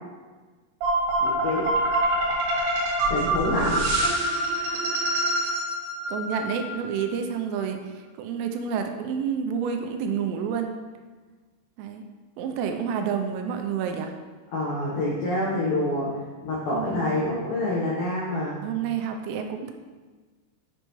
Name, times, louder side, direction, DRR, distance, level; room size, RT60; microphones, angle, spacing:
sound 1, 0.8-6.9, right 1 dB, 65° right, 3.1 m, -25 dB
voice 1, 1.2-1.7 3.1-3.9 14.5-16.1 16.4-18.6, left 1 dB, 85° left, -6 dB, 1.9 m, -27 dB
voice 2, 6.1-10.8 11.8-12.0 12.4-14.2 16.7-17.2 18.6-19.7, right 7 dB, 85° right, 5 dB, 3.2 m, -29 dB
8.1 x 6.5 x 3.1 m, 1.4 s
omnidirectional pair, 5.8 m